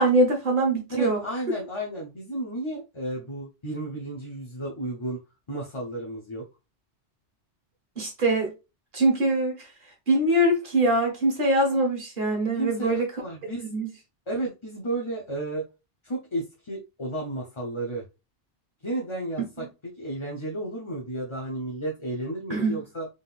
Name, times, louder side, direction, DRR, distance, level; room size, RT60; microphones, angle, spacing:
voice 1, 0.0-1.2 8.0-8.5 8.9-9.7 10.1-13.0 13.4-13.9 22.5-22.8, right 1 dB, 45° right, 1.6 m, -23 dB
voice 2, 0.9-5.2 5.5-6.4 12.5-12.9 13.2-13.7 14.3-15.6 16.0-18.1 18.8-19.7 20.0-23.1, right 1 dB, 30° left, 0.8 m, -32 dB
3.8 x 3.8 x 2.4 m
omnidirectional pair, 1.2 m